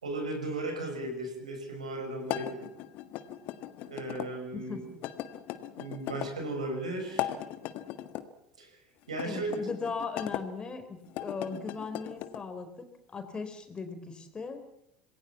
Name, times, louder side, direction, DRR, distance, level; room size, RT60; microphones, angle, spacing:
voice 1, 0.0-2.7 3.8-4.8 5.8-7.3 8.6-8.8 9.1-9.7, right 2 dB, 80° right, 4 dB, 6.0 m, -36 dB
sound 1, 2.2-4.3 5.0-6.3 7.0-8.3 9.1-10.4 11.0-12.4, left 13 dB, 50° left, 1.6 m, -38 dB
voice 2, 4.5-5.0 9.2-12.9 13.1-14.6, left 4 dB, 25° left, 7 dB, 4.3 m, -38 dB
27.5 x 20.5 x 7.3 m, 0.80 s
figure-of-eight pair, 70°, 4 cm